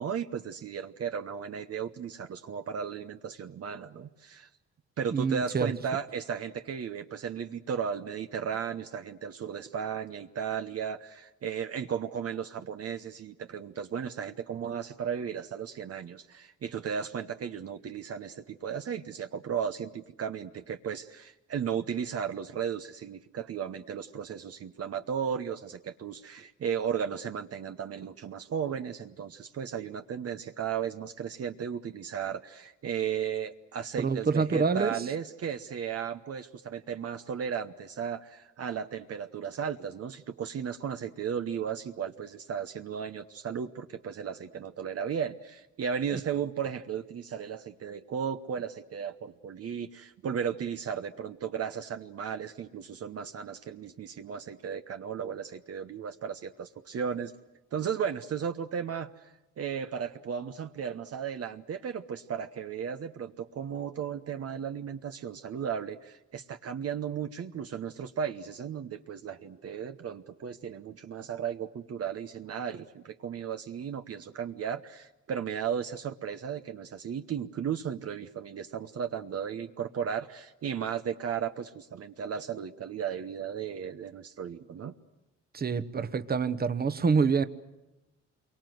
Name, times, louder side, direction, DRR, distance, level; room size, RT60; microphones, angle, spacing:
voice 1, 0.0-4.5 5.0-57.3 57.7-84.9, right 7 dB, 55° right, 1.0 m, -35 dB
voice 2, 5.1-5.7 34.0-35.0 46.1-46.2 85.5-87.4, right 5 dB, 30° right, 1.2 m, -26 dB
28.0 x 23.5 x 7.9 m
cardioid pair, 90°, 30 cm